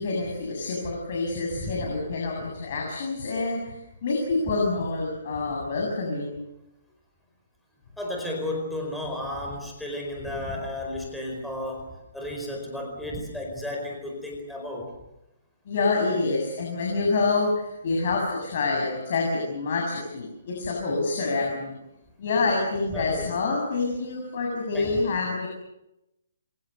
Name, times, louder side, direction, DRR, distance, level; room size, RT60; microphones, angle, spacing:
voice 1, 0.0-6.4 15.7-21.7 22.2-25.5, left 3 dB, 45° left, 0 dB, 7.5 m, -27 dB
voice 2, 8.0-14.9 22.9-23.3 24.7-25.0, left 1 dB, ahead, -1 dB, 4.7 m, -33 dB
27.5 x 24.5 x 6.9 m, 0.92 s
hypercardioid pair, 170°, 0 cm